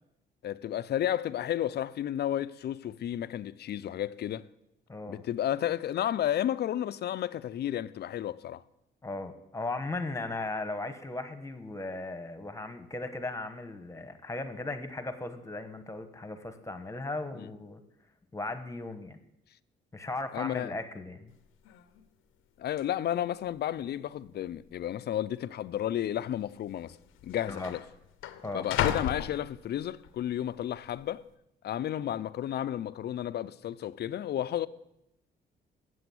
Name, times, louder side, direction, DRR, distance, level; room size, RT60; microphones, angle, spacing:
voice 1, 0.4-4.4 5.1-8.6 17.3-17.5 20.3-20.7 22.6-27.0 27.2-27.8 28.5-31.2 31.6-34.7, left 11 dB, 55° left, 0.5 m, -32 dB
voice 2, 4.9-5.2 9.0-17.8 18.3-19.2 19.9-21.3 27.5-27.7 28.4-28.7, left 2 dB, 15° left, 1.2 m, -37 dB
sound 1, 21.3-21.4 21.7-22.1 22.8-22.9 23.6-24.1 24.4-24.5 25.4-25.6 26.6-26.7 26.9-30.1 30.6-31.0, left 10 dB, 90° left, 0.7 m, -35 dB
8.1 x 7.7 x 7.7 m
cardioid pair, 90°, 20 cm